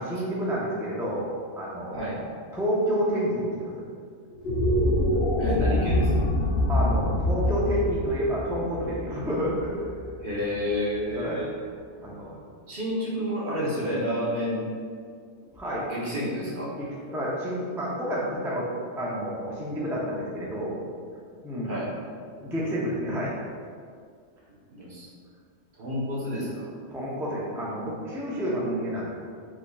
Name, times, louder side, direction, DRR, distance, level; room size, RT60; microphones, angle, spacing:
voice 1, 0.0-2.2 2.5-3.9 6.7-9.8 11.1-11.4 12.0-12.4 15.5-15.9 16.8-18.7 19.0-20.8 21.4-21.7 22.3-23.3 26.9-29.1, equal, 5° right, -6 dB, 0.4 m, -29 dB
sound 1, 4.3-10.7, left 1 dB, 60° left, 0.8 m, -25 dB
voice 2, 5.4-6.2 10.2-11.5 12.7-14.7 15.9-16.7 21.6-21.9 24.7-25.1 25.8-26.7, equal, 45° right, -6 dB, 1.1 m, -29 dB
4.9 x 4.1 x 2.3 m, 2.1 s
omnidirectional pair, 1.2 m